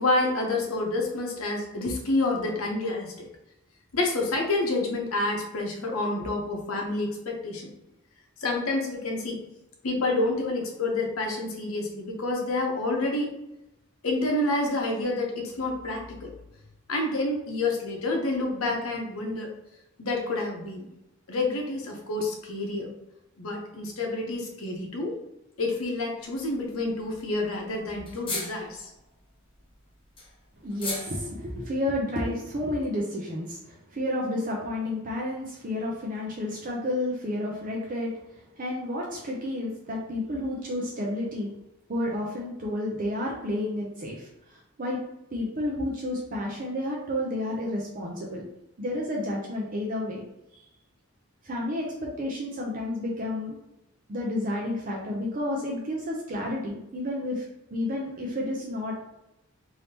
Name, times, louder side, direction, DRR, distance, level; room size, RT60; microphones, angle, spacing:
voice 1, 0.0-3.3 3.9-7.7 8.4-9.4 9.8-13.3 14.0-16.3 16.9-19.5 20.0-20.9 21.3-22.9 23.4-25.1 25.6-28.9, left 2 dB, 85° left, 1 dB, 0.8 m, -28 dB
sound 1, 26.2-26.6 26.8-26.9 27.1-27.2 27.4-27.5 28.0-29.0 29.6-31.7, left 2 dB, 25° left, 0.7 m, -37 dB
voice 2, 30.6-41.5 41.9-45.0 45.3-48.5 48.8-50.2 51.4-53.6 54.1-59.1, left 1 dB, 40° right, -2 dB, 0.5 m, -31 dB
3.5 x 2.7 x 2.8 m, 0.90 s
head